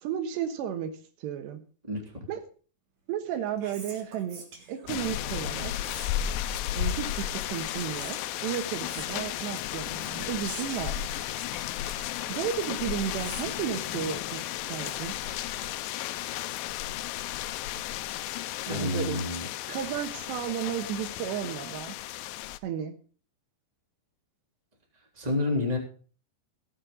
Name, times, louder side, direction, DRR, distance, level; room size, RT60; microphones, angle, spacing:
voice 1, 0.0-1.6 2.3-2.4 3.1-4.4 4.7-5.9 6.7-11.0 12.3-14.4 14.7-15.1 18.7-19.2 19.7-22.0 22.6-22.9, right 9 dB, 85° right, 8 dB, 3.4 m, -33 dB
voice 2, 1.9-2.2 18.7-19.4 25.1-25.8, left 2 dB, 10° right, 0 dB, 2.7 m, -29 dB
Whispering, 3.1-16.0, right 4 dB, 45° right, 3.0 m, -49 dB
sound 1, 4.9-22.6, left 12 dB, 90° left, 2.0 m, -34 dB
17.5 x 7.6 x 3.8 m, 0.39 s
omnidirectional pair, 4.9 m